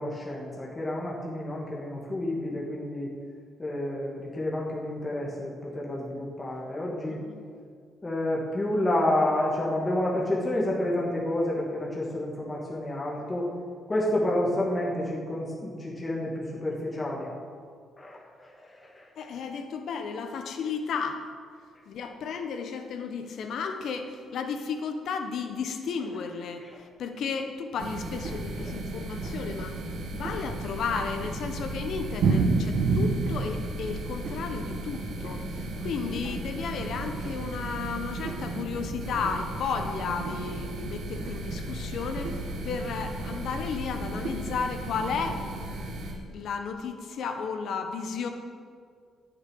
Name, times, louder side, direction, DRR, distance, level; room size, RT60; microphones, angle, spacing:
voice 1, 0.0-3.1 3.6-7.2 8.0-13.5 13.9-17.3 18.0-19.3 26.7-26.8, left 1 dB, 20° left, -5 dB, 2.6 m, -29 dB
voice 2, 19.2-21.2 21.9-29.8 30.1-45.4 46.3-48.3, left 5 dB, 65° left, 6 dB, 1.2 m, -33 dB
sound 1, 27.8-46.1, right 3 dB, 70° right, 2.4 m, -32 dB
10.5 x 6.6 x 9.1 m, 2.1 s
cardioid pair, 100°, 0 cm